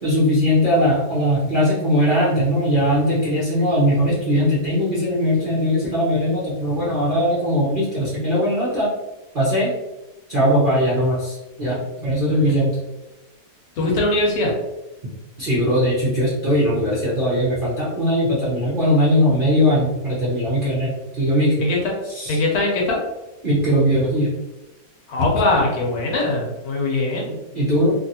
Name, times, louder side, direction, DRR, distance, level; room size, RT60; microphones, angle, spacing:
voice 1, 0.0-8.9 9.3-9.7 10.3-12.8 15.4-21.6 22.1-22.4 23.4-24.3 27.5-27.9, equal, 45° right, -8 dB, 0.6 m, -20 dB
voice 2, 13.8-14.5 21.6-21.8 22.3-23.0 25.1-27.4, left 2 dB, 65° left, -1 dB, 1.1 m, -21 dB
2.8 x 2.7 x 2.7 m, 1.0 s
omnidirectional pair, 1.9 m